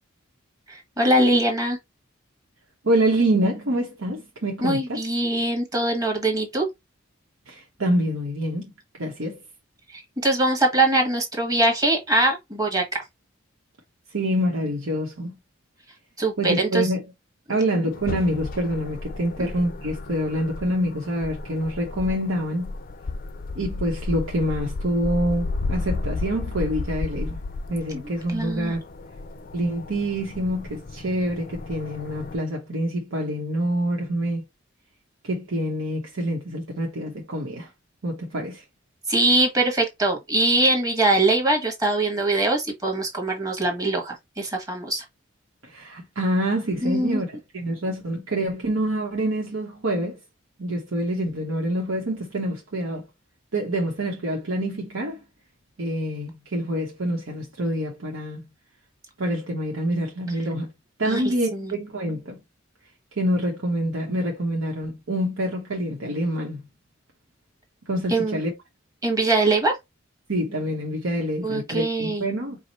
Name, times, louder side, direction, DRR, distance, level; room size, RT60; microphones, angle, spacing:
voice 1, 0.7-1.8 4.6-6.7 9.9-12.8 16.2-16.9 19.4-19.5 27.9-28.0 28.3-28.7 39.1-45.0 46.8-47.2 61.0-61.2 61.5-61.7 68.1-68.4 69.0-69.7 71.4-72.3, right 2 dB, 20° right, 1.4 m, -22 dB
voice 2, 2.8-5.0 7.5-8.7 9.0-9.4 14.1-15.4 16.4-17.1 17.5-22.7 23.5-27.4 27.7-28.8 29.5-34.4 35.2-37.7 38.0-38.6 45.6-50.2 50.6-53.0 53.5-55.2 55.8-58.4 59.2-60.7 61.0-62.4 63.2-66.6 67.9-68.5 70.3-72.6, right 1 dB, 80° right, 0.9 m, -26 dB
sound 1, 17.9-32.4, left 3 dB, 45° left, 0.4 m, -33 dB
4.7 x 2.0 x 4.1 m
head